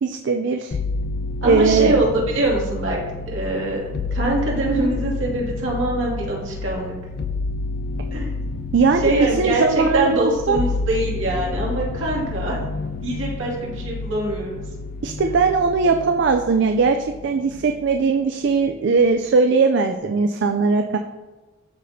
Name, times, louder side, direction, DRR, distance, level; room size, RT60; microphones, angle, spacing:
voice 1, 0.0-0.8 1.4-2.0 8.7-9.0 9.4-10.6 15.0-17.0 17.2-21.0, right 4 dB, 60° right, 6 dB, 0.4 m, -19 dB
sound 1, 0.7-18.1 18.5-19.2, left 3 dB, 50° left, 0.4 m, -29 dB
voice 2, 1.4-3.0 3.3-6.9 8.1-8.3 9.0-12.6 13.0-14.6, right 2 dB, 75° right, -4 dB, 2.3 m, -23 dB
12.5 x 4.2 x 2.7 m, 1.2 s
head